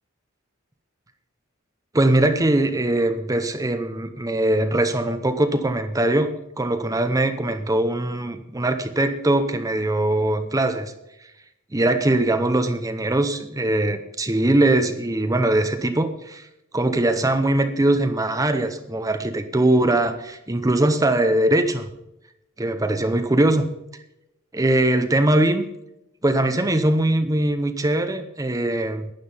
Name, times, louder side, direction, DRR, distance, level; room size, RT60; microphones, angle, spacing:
voice 1, 1.9-6.3 6.6-10.9 11.7-16.5 16.7-21.9 22.6-23.6 24.5-25.6 26.2-29.1, right 1 dB, 15° right, 8 dB, 0.8 m, -21 dB
12.0 x 10.0 x 5.6 m, 0.87 s
head